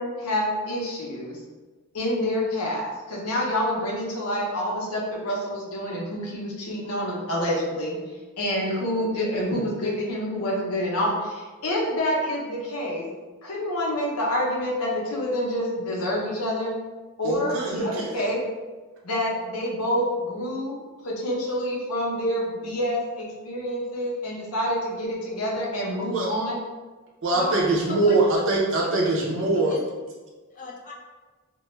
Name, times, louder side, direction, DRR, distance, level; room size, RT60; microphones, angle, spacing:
voice 1, 0.0-1.4 1.9-8.0 8.4-13.0 13.4-16.7 17.2-18.4 19.0-26.6, equal, 80° left, -3 dB, 0.6 m, -27 dB
voice 2, 17.2-17.9 26.1-26.3 27.2-29.7, right 2 dB, 60° right, -3 dB, 0.5 m, -23 dB
voice 3, 29.2-29.8 30.5-30.9, left 2 dB, 35° left, -2 dB, 0.4 m, -35 dB
2.2 x 2.1 x 3.0 m, 1.3 s
head